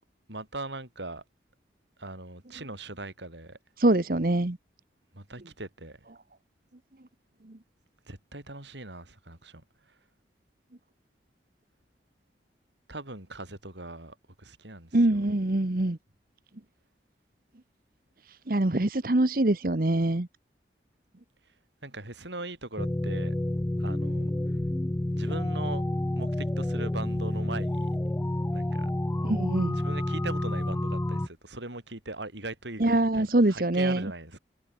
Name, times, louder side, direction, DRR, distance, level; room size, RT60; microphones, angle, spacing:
voice 1, 0.3-1.2 2.0-3.6 5.1-6.0 8.1-9.6 12.9-15.2 21.8-23.4 23.8-24.3 25.1-25.8 26.1-27.9 28.5-28.9 29.7-34.4, right 2 dB, 85° right, 6.5 m, -40 dB
voice 2, 3.8-4.6 7.5-7.6 14.9-16.0 18.5-20.3 29.2-29.8 32.8-34.1, right 1 dB, 55° right, 1.1 m, -24 dB
sound 1, 22.8-31.3, left 1 dB, 10° left, 0.4 m, -29 dB
head